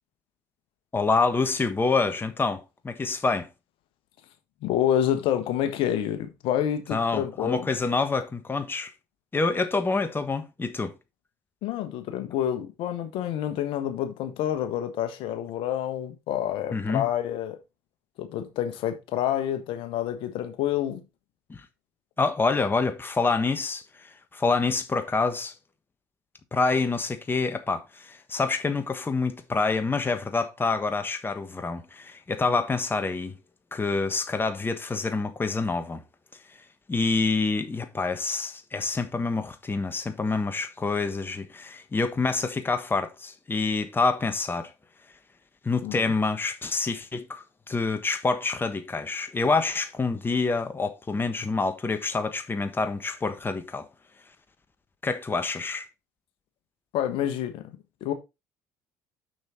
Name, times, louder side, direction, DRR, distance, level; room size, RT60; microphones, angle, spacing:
voice 1, 0.9-3.5 6.9-8.9 9.3-10.9 16.7-17.1 21.5-21.6 22.2-25.5 26.5-33.3 33.7-36.0 36.9-44.7 45.6-53.9 55.0-55.9, left 4 dB, 20° left, 1.3 m, -27 dB
voice 2, 4.6-7.7 11.6-17.6 18.2-21.0 45.8-46.0 56.9-58.1, left 10 dB, 65° left, 1.4 m, -28 dB
6.3 x 6.3 x 4.3 m
hypercardioid pair, 65°, 9 cm